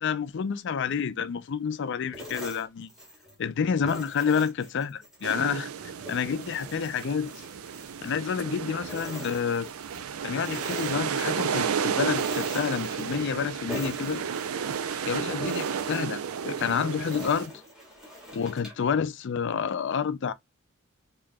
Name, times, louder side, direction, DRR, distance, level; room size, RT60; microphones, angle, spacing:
voice 1, 0.0-2.9 3.4-5.7 6.1-7.4 8.0-9.7 10.2-14.2 15.1-17.6 18.3-20.3, left 6 dB, 55° left, 0.4 m, -29 dB
sound 1, 2.1-3.4 3.8-5.4 5.8-8.5 8.8-10.1 10.4-11.7 12.1-13.4 13.7-15.0 15.4-18.9, equal, 5° right, 1.6 m, -43 dB
sound 2, 5.2-17.5, right 7 dB, 85° right, 0.5 m, -32 dB
4.7 x 2.8 x 2.2 m
head